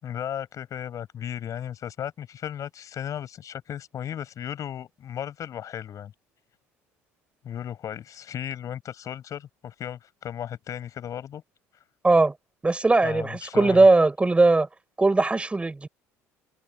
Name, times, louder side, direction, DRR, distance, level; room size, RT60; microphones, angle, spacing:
voice 1, 0.0-6.1 7.4-11.4 13.0-13.9, left 10 dB, 50° left, 8.0 m, -35 dB
voice 2, 12.6-14.7 15.0-15.9, right 3 dB, 15° right, 4.7 m, -19 dB
supercardioid pair, 80°, 7 cm